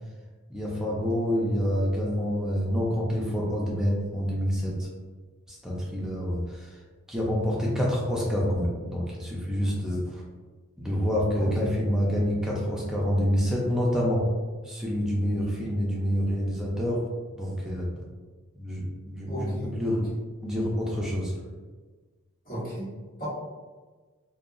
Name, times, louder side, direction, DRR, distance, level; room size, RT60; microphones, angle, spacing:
voice 1, 0.5-4.9 5.5-6.8 7.1-10.2 10.8-14.2 14.6-17.0 17.4-17.9 18.6-20.1 20.4-21.3, equal, 5° right, -4 dB, 0.4 m, -27 dB
voice 2, 19.3-19.7 22.4-22.9 23.2-23.3, equal, 40° left, -11 dB, 1.5 m, -34 dB
2.7 x 2.3 x 2.4 m, 1.3 s
head